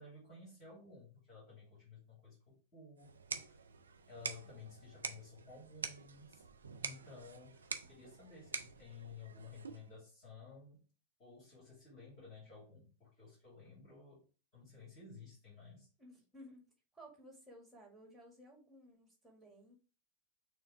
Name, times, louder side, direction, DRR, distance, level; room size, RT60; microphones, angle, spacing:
voice 1, 0.0-3.6 4.1-6.4 6.8-10.8 11.2-14.2 14.5-15.9, left 4 dB, 35° left, -6 dB, 2.7 m, -55 dB
sound 1, 3.0-10.0, right 5 dB, 70° right, 0.5 m, -47 dB
voice 2, 16.0-16.6 16.9-19.8, equal, 5° right, -2 dB, 1.9 m, -57 dB
6.5 x 2.5 x 3.3 m, 0.35 s
figure-of-eight pair, 90°, 0 cm